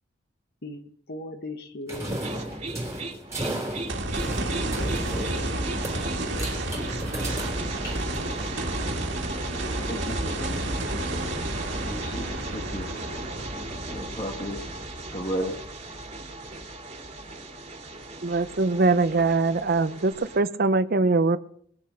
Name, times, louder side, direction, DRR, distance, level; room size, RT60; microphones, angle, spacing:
voice 1, 0.6-2.6 4.4-5.6 6.1-7.1, left 1 dB, 60° left, 7 dB, 1.6 m, -40 dB
sound 1, 1.9-8.6, right 1 dB, 15° right, 3.3 m, -35 dB
sound 2, 2.2-20.4, right 2 dB, 35° right, 2.5 m, -38 dB
sound 3, 3.9-16.2 16.7-16.8 20.1-20.2, right 1 dB, 70° right, 2.0 m, -31 dB
voice 2, 9.9-10.7 11.9-12.9 13.9-14.7 15.1-15.6, equal, 25° left, 1 dB, 1.4 m, -34 dB
voice 3, 18.2-21.4, right 3 dB, 50° right, 13 dB, 0.7 m, -22 dB
20.0 x 7.4 x 5.7 m, 0.63 s
head